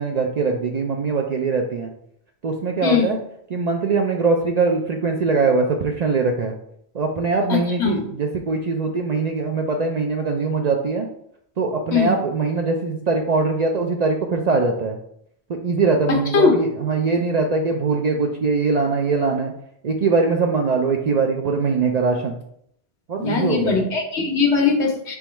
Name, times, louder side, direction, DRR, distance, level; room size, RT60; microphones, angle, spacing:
voice 1, 0.0-1.9 2.4-3.2 3.5-6.6 6.9-11.1 11.6-15.0 15.5-19.5 19.8-22.4 23.1-23.8, right 4 dB, 55° right, 2 dB, 0.4 m, -22 dB
voice 2, 2.8-3.1 7.5-8.0 11.9-12.1 16.1-16.5 23.2-25.1, left 5 dB, 90° left, 1 dB, 1.2 m, -20 dB
3.5 x 3.0 x 4.4 m, 0.70 s
omnidirectional pair, 1.1 m